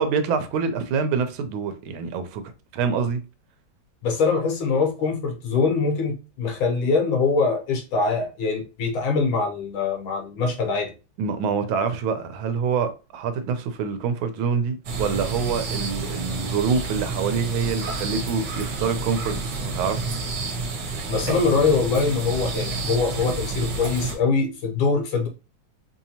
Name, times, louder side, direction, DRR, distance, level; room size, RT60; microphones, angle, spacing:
voice 1, 0.0-2.4 2.7-3.2 11.2-20.2 21.3-21.4, right 5 dB, 90° right, 1.5 m, -26 dB
voice 2, 4.0-10.9 21.1-25.3, left 4 dB, 85° left, 1.8 m, -23 dB
sound 1, 14.8-24.1, right 3 dB, 60° right, 1.3 m, -29 dB
4.5 x 2.7 x 2.7 m
omnidirectional pair, 2.2 m